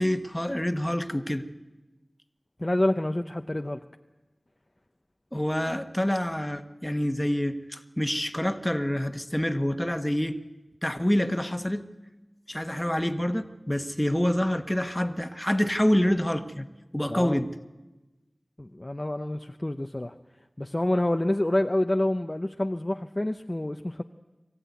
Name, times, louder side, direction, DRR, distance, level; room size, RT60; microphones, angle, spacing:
voice 1, 0.0-1.4 5.3-10.4 10.8-11.8 12.5-16.7 16.9-17.5, equal, 15° left, 9 dB, 1.3 m, -27 dB
voice 2, 2.6-3.8 17.1-17.4 18.6-20.1 20.6-24.0, left 1 dB, 30° left, 6 dB, 0.7 m, -27 dB
23.0 x 15.0 x 9.5 m, 1.1 s
wide cardioid pair, 50°, 0 cm